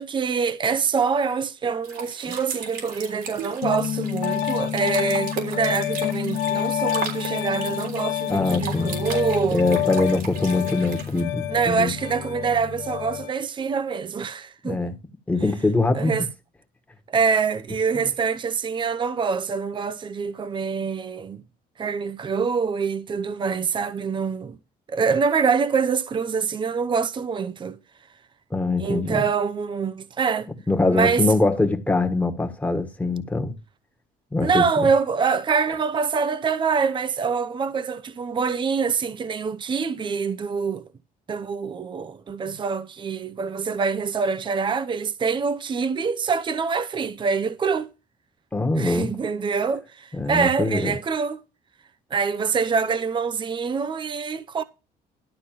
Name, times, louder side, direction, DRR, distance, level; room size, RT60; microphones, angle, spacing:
voice 1, 0.0-9.6 11.5-14.9 15.9-16.3 17.1-21.4 21.8-24.6 24.9-27.8 28.8-30.5 30.9-31.3 34.4-40.8 41.3-47.9 48.8-51.4 52.1-54.6, right 5 dB, 30° right, 0.7 m, -25 dB
sound 1, 1.8-11.2, right 5 dB, 85° right, 3.7 m, -36 dB
Piano, 3.6-13.3, left 10 dB, 85° left, 1.2 m, -28 dB
voice 2, 8.3-9.0 9.5-11.9 14.6-14.9 15.3-16.3 17.9-18.1 28.5-29.2 30.7-33.5 34.3-34.9 42.5-42.6 48.5-49.1 50.1-50.9, left 2 dB, 10° left, 1.5 m, -23 dB
12.0 x 4.0 x 7.5 m
cardioid pair, 110°, 17 cm